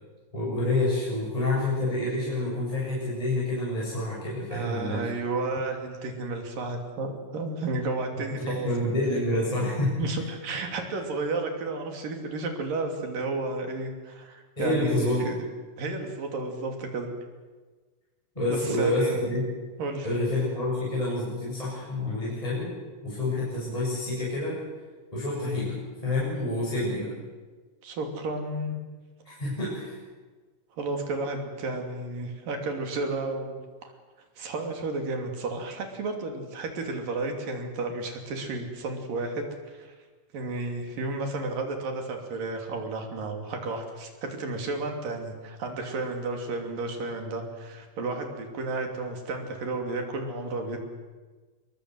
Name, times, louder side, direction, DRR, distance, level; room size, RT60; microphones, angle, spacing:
voice 1, 0.3-5.1 8.3-10.1 14.6-15.3 18.3-19.4 20.0-22.7 23.0-24.6 25.1-25.8 26.0-27.1 29.2-29.9, left 2 dB, 10° left, -6 dB, 7.7 m, -28 dB
voice 2, 4.5-8.7 10.0-15.4 15.8-17.1 18.5-19.3 19.8-20.1 27.8-28.8 30.8-33.9 34.4-39.9 40.3-50.8, right 3 dB, 75° right, 3 dB, 4.6 m, -32 dB
27.5 x 22.5 x 8.0 m, 1.4 s
omnidirectional pair, 4.0 m